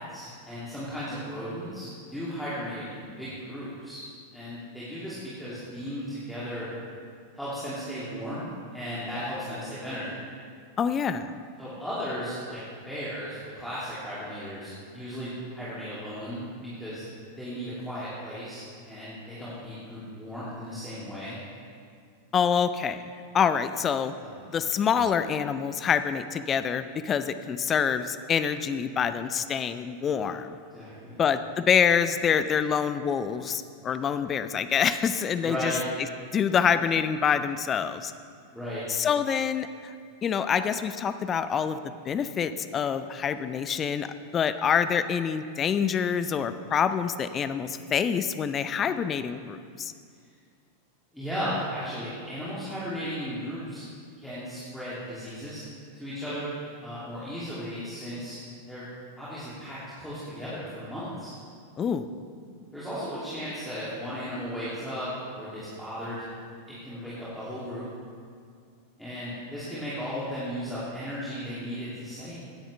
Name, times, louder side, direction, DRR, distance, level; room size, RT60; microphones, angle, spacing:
voice 1, 0.0-4.0 4.3-6.7 7.3-8.4 8.7-10.2 11.6-12.6 12.8-17.0 17.4-21.4 24.2-24.4 30.7-31.2 35.4-35.8 38.5-38.8 51.1-53.8 54.2-55.6 55.9-56.5 56.8-58.4 58.7-58.8 59.2-61.3 62.7-65.1 65.3-66.2 66.7-67.8 69.0-72.4, equal, ahead, -11 dB, 2.8 m, -35 dB
voice 2, 10.8-11.3 22.3-23.1 23.3-24.1 24.5-30.6 31.2-35.7 36.3-38.1 38.9-39.9 40.2-41.8 42.0-44.1 44.3-49.9 61.8-62.1, left 7 dB, 25° left, 11 dB, 0.5 m, -26 dB
16.5 x 10.0 x 3.4 m, 2.2 s
figure-of-eight pair, 90°, 0 cm